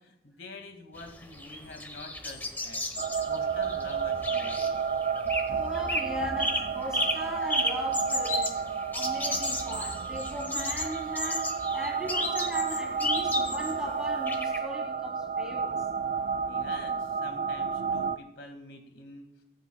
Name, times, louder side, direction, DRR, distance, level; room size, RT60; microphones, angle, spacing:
voice 1, 0.0-4.9 5.2-5.6 16.5-19.2, left 2 dB, 90° left, 2.1 m, -46 dB
sound 1, 1.0-5.5 5.7-6.1 6.4-13.8 14.3-14.6, left 1 dB, 10° left, 1.1 m, -33 dB
sound 2, 3.0-18.2, right 6 dB, 45° right, 0.4 m, -31 dB
voice 2, 5.5-8.6 8.9-15.8, equal, 5° right, 2.3 m, -38 dB
24.5 x 8.8 x 2.3 m
head